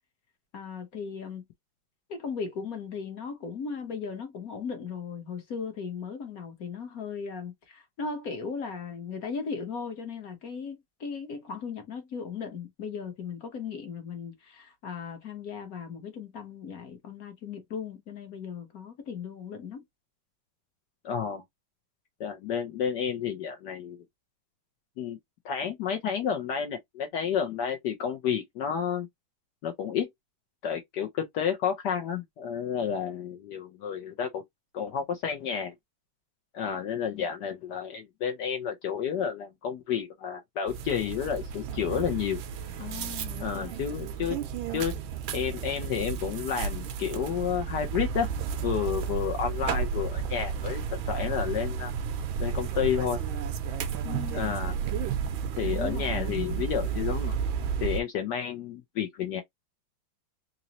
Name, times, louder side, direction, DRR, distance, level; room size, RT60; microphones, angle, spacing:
voice 1, 0.5-1.5 2.1-19.8 37.1-37.3 42.8-43.7 54.0-54.5 55.6-56.6, left 5 dB, 50° left, 1.3 m, -37 dB
voice 2, 21.0-21.4 22.2-24.0 25.0-25.2 25.4-29.1 29.6-30.1 30.6-34.4 34.7-35.7 36.5-42.4 43.4-44.4 44.7-44.9 45.3-48.3 48.6-51.9 52.4-53.2 54.3-54.8 55.6-57.4 57.8-59.4, left 8 dB, 65° left, 1.1 m, -30 dB
sound 1, 40.7-58.0, right 7 dB, 75° right, 1.3 m, -32 dB
4.0 x 2.6 x 2.9 m
omnidirectional pair, 2.4 m